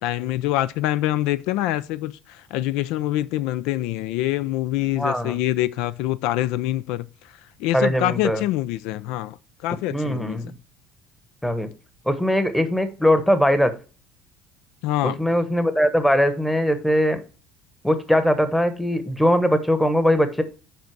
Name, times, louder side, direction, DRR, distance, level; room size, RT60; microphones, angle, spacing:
voice 1, 0.0-9.4 9.6-10.4 14.8-15.2, left 15 dB, 80° left, 0.3 m, -25 dB
voice 2, 5.0-5.3 7.7-8.4 9.9-10.5 11.4-11.7 12.1-13.7 15.0-17.2 17.8-20.4, equal, 5° left, 1.0 m, -20 dB
7.6 x 5.3 x 4.6 m
cardioid pair, 130°, 0 cm